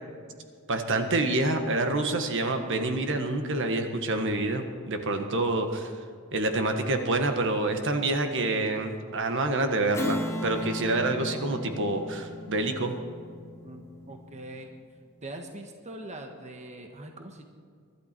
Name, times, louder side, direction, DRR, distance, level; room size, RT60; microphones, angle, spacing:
voice 1, 0.7-5.9 6.3-13.0, right 2 dB, 60° right, 6 dB, 1.5 m, -27 dB
Strum, 9.9-14.8, left 1 dB, 15° left, 1.5 m, -36 dB
voice 2, 13.6-14.7 15.2-17.4, right 1 dB, 30° right, 3 dB, 1.3 m, -42 dB
24.0 x 12.0 x 4.5 m, 2.2 s
head